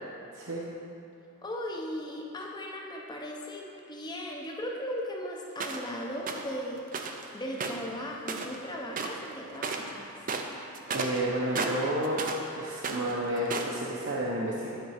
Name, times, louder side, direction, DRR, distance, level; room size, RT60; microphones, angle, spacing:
voice 1, 1.4-6.8 7.3-10.1, equal, 20° left, -1 dB, 0.8 m, -37 dB
sound 1, 5.6-5.9 6.3-6.5 6.9-7.2 7.5-8.6 8.9-9.3 9.5-9.9 10.2-12.5 12.8-13.8, right 4 dB, 40° right, 0.5 m, -34 dB
voice 2, 10.9-12.3 12.5-14.8, right 1 dB, 60° right, -5 dB, 0.8 m, -31 dB
10.0 x 3.8 x 5.7 m, 2.6 s
head